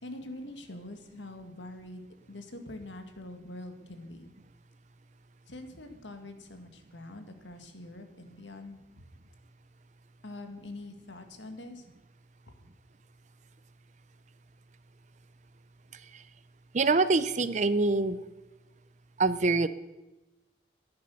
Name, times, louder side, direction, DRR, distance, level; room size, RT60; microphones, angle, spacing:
voice 1, 0.0-4.3 5.5-8.8 10.2-11.9 12.5-12.6, left 1 dB, 85° left, 6 dB, 2.0 m, -44 dB
voice 2, 15.9-16.2 16.7-18.2 19.2-19.7, right 3 dB, 40° right, 15 dB, 0.6 m, -25 dB
14.5 x 10.5 x 7.1 m, 1.0 s
head